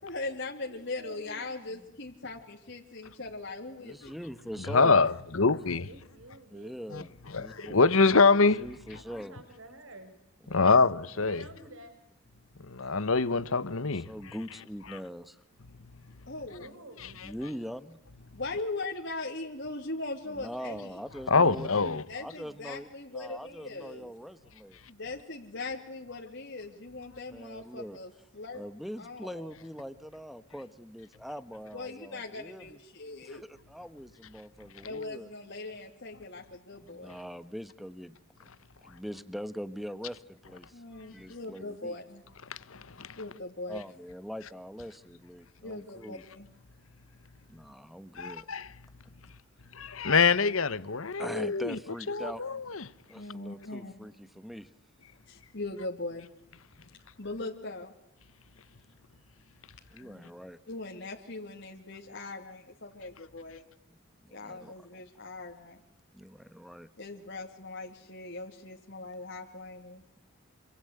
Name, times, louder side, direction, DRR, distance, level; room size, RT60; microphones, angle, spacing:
voice 1, 0.0-4.1 16.3-16.7 18.3-21.0 22.1-24.1 24.9-28.6 29.0-29.5 31.7-33.4 34.8-37.2 40.7-42.2 43.2-43.8 45.6-46.5 53.1-53.9 55.3-56.3 57.2-57.9 60.7-63.6 64.3-65.8 67.0-70.0, left 2 dB, 55° left, 2.8 m, -40 dB
voice 2, 0.6-1.9 5.8-6.7 9.0-10.1 10.4-10.7 11.1-11.9 16.5-17.2 23.2-24.1 59.9-60.3, right 1 dB, 65° right, 6.4 m, -51 dB
voice 3, 3.8-5.0 5.5-5.6 6.5-7.8 8.6-9.4 13.9-15.4 17.2-18.0 20.3-24.8 27.3-28.0 28.5-32.7 33.2-35.3 36.8-38.2 38.8-40.8 41.1-42.0 43.7-46.2 47.5-48.5 51.2-52.4 53.1-54.7 59.9-60.6 64.2-64.7 66.1-66.9, equal, ahead, 1.2 m, -42 dB
voice 4, 4.7-5.9 6.9-7.0 7.3-8.6 10.5-11.4 12.7-14.1 21.3-22.0 42.5-43.2 48.2-48.7 49.7-51.8 52.1-52.8, left 4 dB, 70° left, 1.1 m, -25 dB
27.0 x 25.0 x 8.1 m
head